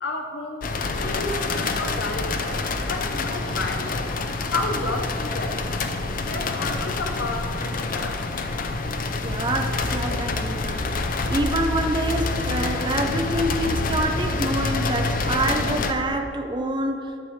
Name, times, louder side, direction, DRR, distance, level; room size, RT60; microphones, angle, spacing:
voice 1, 0.0-4.1 4.5-5.6 6.1-8.2, left 2 dB, 70° left, 3 dB, 0.8 m, -31 dB
sound 1, 0.6-15.9, left 3 dB, 45° left, 0.5 m, -27 dB
voice 2, 9.2-10.9 11.3-17.1, right 1 dB, 25° right, 3 dB, 0.6 m, -26 dB
11.0 x 6.5 x 3.2 m, 2.4 s
head